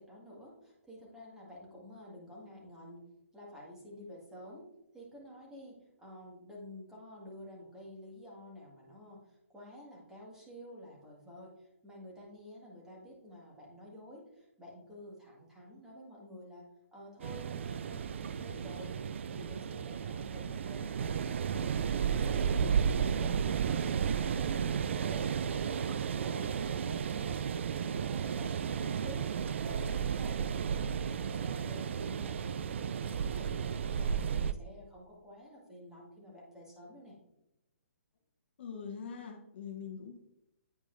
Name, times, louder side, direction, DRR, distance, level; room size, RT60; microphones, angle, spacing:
voice 1, 0.0-3.0 3.3-4.6 4.9-16.6 16.9-18.9 19.3-25.8 26.1-29.3 29.6-37.1, equal, 5° right, -4 dB, 1.8 m, -50 dB
sound 1, 17.2-34.5, right 7 dB, 65° right, 0.3 m, -33 dB
voice 2, 38.6-40.2, left 6 dB, 55° left, 3 dB, 0.9 m, -43 dB
9.0 x 4.8 x 2.6 m, 0.85 s
hypercardioid pair, 140°, 7 cm